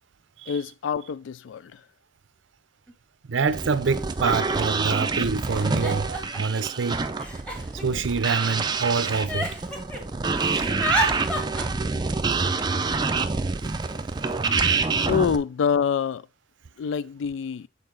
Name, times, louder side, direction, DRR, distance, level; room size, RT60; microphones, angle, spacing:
voice 1, 0.5-1.8 15.0-16.3 16.8-17.7, left 7 dB, 70° left, 0.3 m, -26 dB
Giggle, 2.9-3.0 3.9-4.0 4.3-4.8 5.5-6.6 7.2-8.5 9.0-10.0 10.3-11.6, right 1 dB, 5° left, 1.1 m, -31 dB
voice 2, 3.3-7.0 7.7-9.5 13.6-13.7, right 4 dB, 70° right, 0.5 m, -26 dB
sound 1, 3.5-15.4, right 4 dB, 20° right, 0.4 m, -27 dB
6.7 x 4.0 x 3.8 m
head